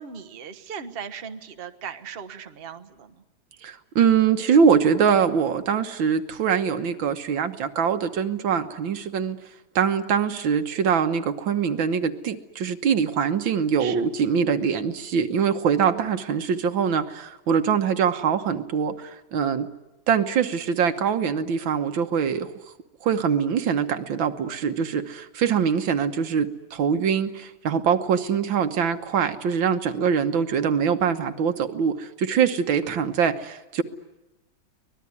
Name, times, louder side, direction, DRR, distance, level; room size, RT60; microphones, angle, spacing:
voice 1, 0.0-3.2 13.8-14.0, right 7 dB, 35° right, 8 dB, 1.2 m, -38 dB
voice 2, 3.6-9.4 9.8-19.7 20.1-22.5 23.0-33.8, right 7 dB, 80° right, 8 dB, 1.9 m, -23 dB
24.5 x 19.5 x 9.7 m, 1.0 s
omnidirectional pair, 2.1 m